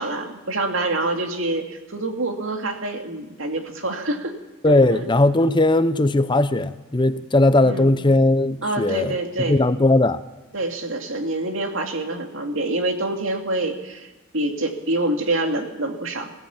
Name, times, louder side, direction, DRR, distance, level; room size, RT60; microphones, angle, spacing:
voice 1, 0.0-4.4 4.6-5.0 7.6-7.9 8.6-9.6 10.5-14.1 14.3-16.3, right 2 dB, 65° right, 4 dB, 2.6 m, -26 dB
voice 2, 4.6-9.1 9.4-10.2, left 2 dB, 20° left, 12 dB, 0.7 m, -18 dB
22.0 x 16.0 x 7.3 m, 1.1 s
head